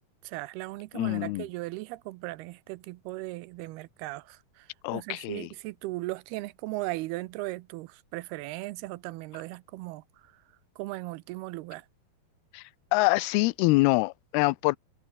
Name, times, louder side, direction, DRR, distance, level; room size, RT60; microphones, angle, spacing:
voice 1, 0.2-10.4 10.8-11.9, right 20 dB, 85° right, 2.7 m, -37 dB
voice 2, 0.9-1.4 4.8-5.5 12.5-12.6 12.9-14.8, left 23 dB, 85° left, 2.5 m, -25 dB
omnidirectional pair, 4.5 m